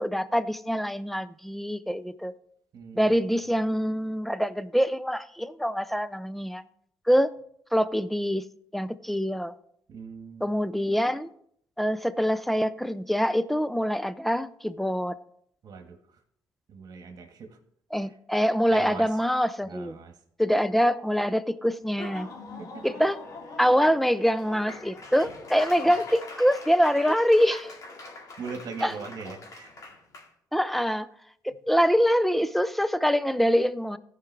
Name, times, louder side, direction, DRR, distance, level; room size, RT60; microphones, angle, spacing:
voice 1, 0.0-2.3 2.9-6.6 7.1-7.3 7.7-8.4 8.7-9.5 10.4-11.3 11.8-15.1 17.9-20.0 20.4-22.3 22.8-23.2 23.6-27.6 28.8-28.9 30.5-31.1 31.4-34.0, equal, ahead, 15 dB, 0.4 m, -24 dB
voice 2, 2.7-3.2 9.9-10.5 15.6-16.2 16.7-17.6 18.0-18.1 18.7-19.1 19.6-20.2 22.6-22.9 25.8-25.9 27.1-27.6 28.4-29.7, right 5 dB, 60° right, 5 dB, 1.5 m, -41 dB
Laughter / Applause, 21.8-30.3, left 3 dB, 50° left, 2.0 m, -43 dB
14.5 x 4.9 x 3.3 m, 0.68 s
cardioid pair, 90°, 7 cm